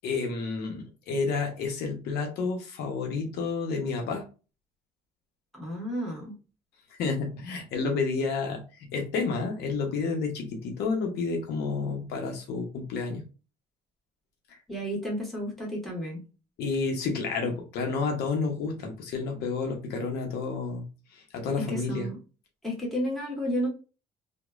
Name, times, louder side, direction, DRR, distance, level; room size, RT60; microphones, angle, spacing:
voice 1, 0.0-4.2 6.9-13.2 16.6-20.8 21.1-22.1, left 4 dB, 75° left, 3 dB, 0.7 m, -30 dB
voice 2, 5.5-6.3 14.7-16.2 21.6-22.2 22.6-23.7, equal, ahead, -4 dB, 1.2 m, -32 dB
2.9 x 2.1 x 2.2 m, 0.33 s
cardioid pair, 110°, 17 cm